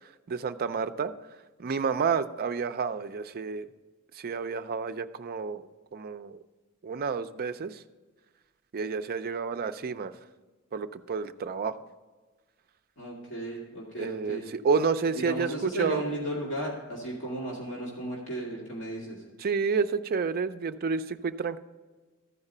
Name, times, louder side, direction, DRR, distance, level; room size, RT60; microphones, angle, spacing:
voice 1, 0.3-1.1 1.6-3.7 4.2-5.7 5.9-6.4 6.8-7.8 8.7-10.1 10.7-11.7 14.0-16.0 19.4-21.6, right 5 dB, 45° right, 10 dB, 0.4 m, -30 dB
voice 2, 13.0-14.4 15.1-19.2, right 1 dB, 60° left, -5 dB, 2.4 m, -35 dB
14.0 x 4.9 x 5.4 m, 1.3 s
head